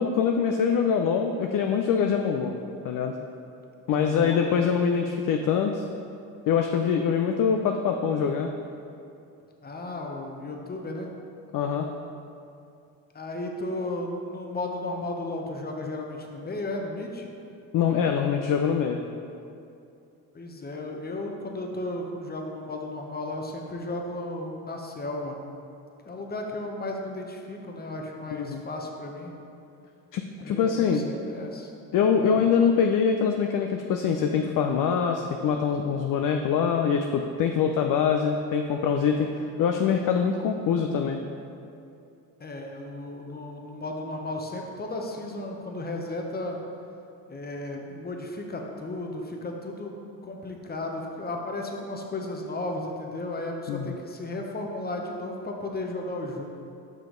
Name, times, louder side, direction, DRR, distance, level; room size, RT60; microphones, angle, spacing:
voice 1, 0.0-2.5 2.8-3.1 3.9-5.8 6.5-8.5 11.5-11.9 17.7-19.0 28.4-28.6 30.1-31.1 31.9-41.2 53.7-53.9, left 6 dB, 45° left, 4 dB, 0.5 m, -24 dB
voice 2, 3.9-4.4 9.6-11.1 13.1-17.3 20.3-25.4 26.0-29.3 30.4-31.7 32.2-32.5 42.4-46.6 47.3-49.9 50.2-56.4, left 2 dB, 20° left, 1 dB, 0.9 m, -34 dB
5.7 x 5.2 x 3.8 m, 2.6 s
hypercardioid pair, 60°, 48 cm